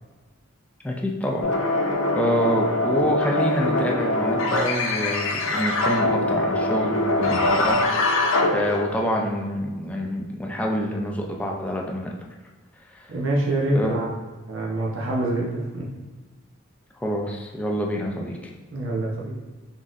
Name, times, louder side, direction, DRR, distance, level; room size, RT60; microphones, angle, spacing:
voice 1, 0.8-1.5 2.2-12.1 13.0-13.1 13.7-14.0 17.0-18.5, equal, 5° left, -1 dB, 0.4 m, -27 dB
sound 1, 1.4-9.1, left 2 dB, 70° left, 0.5 m, -23 dB
voice 2, 13.1-14.1 14.5-15.9 18.7-19.3, right 1 dB, 75° right, -3 dB, 0.7 m, -25 dB
3.9 x 3.8 x 2.4 m, 1.3 s
head